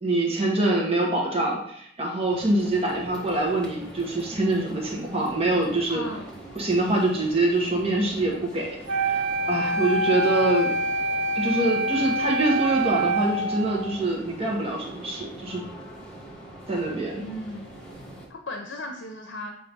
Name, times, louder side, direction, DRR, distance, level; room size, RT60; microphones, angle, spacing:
voice 1, 0.0-6.0 6.5-10.8 11.3-15.6 16.7-17.2, right 2 dB, 30° right, -2 dB, 1.4 m, -25 dB
sound 1, 2.3-18.3, right 1 dB, 5° left, 1.5 m, -43 dB
voice 2, 5.9-6.4 17.2-17.7 18.3-19.5, left 1 dB, 70° left, 3 dB, 0.7 m, -36 dB
Wind instrument woodwind instrument, 8.9-14.0, right 2 dB, 70° right, 0.6 m, -26 dB
7.6 x 3.0 x 5.3 m, 0.70 s
head